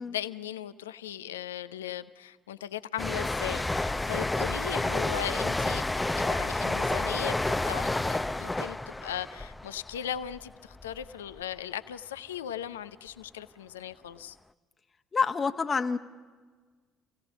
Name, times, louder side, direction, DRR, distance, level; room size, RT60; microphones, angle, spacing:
voice 1, 0.0-14.4, left 11 dB, 85° left, 13 dB, 0.6 m, -38 dB
sound 1, 3.0-10.4 10.7-11.1, left 2 dB, 15° left, 0.6 m, -30 dB
voice 2, 15.1-16.0, left 5 dB, 35° left, 9 dB, 1.2 m, -27 dB
29.0 x 17.0 x 5.9 m, 1.4 s
hypercardioid pair, 55°, 0 cm